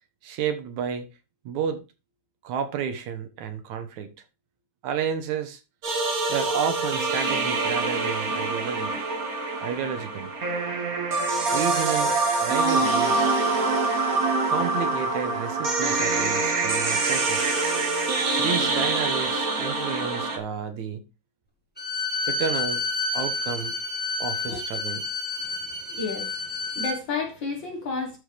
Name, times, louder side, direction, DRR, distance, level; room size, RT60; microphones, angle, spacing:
voice 1, 0.2-1.1 1.5-1.8 2.4-4.1 4.8-5.6 6.3-9.0 9.6-10.3 11.5-13.3 14.5-17.6 18.4-21.0 22.3-22.9 23.1-23.8 24.2-25.0, right 7 dB, 70° right, 2.4 m, -31 dB
sound 1, 5.8-20.4, right 3 dB, 40° right, 1.3 m, -25 dB
Bowed string instrument, 21.8-27.0, left 3 dB, 5° left, 0.9 m, -29 dB
voice 2, 25.9-28.2, left 4 dB, 45° left, 1.8 m, -32 dB
13.0 x 5.5 x 3.4 m
omnidirectional pair, 3.5 m